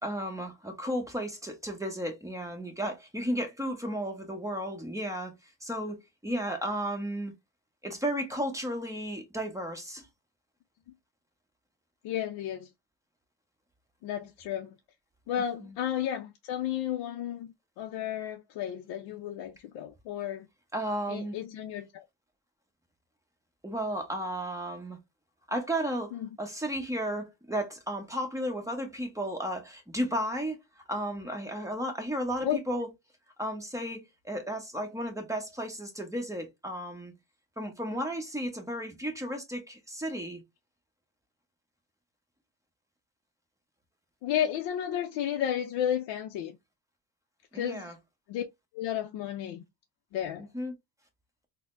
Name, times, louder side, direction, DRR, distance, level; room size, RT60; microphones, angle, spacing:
voice 1, 0.0-5.3 5.6-7.3 7.8-10.1 15.6-15.7 20.7-21.4 23.6-25.0 25.5-30.6 30.9-32.9 33.4-37.1 37.6-40.4 47.5-47.9 50.5-50.7, equal, 5° right, 0.9 m, -34 dB
voice 2, 12.0-12.7 14.0-14.8 15.3-20.5 21.1-22.0 26.1-26.3 32.4-32.6 44.2-46.5 47.5-47.9 48.3-48.4 48.7-49.7 50.1-50.5, left 10 dB, 55° left, 0.5 m, -32 dB
4.0 x 2.1 x 2.5 m
supercardioid pair, 95°, 48 cm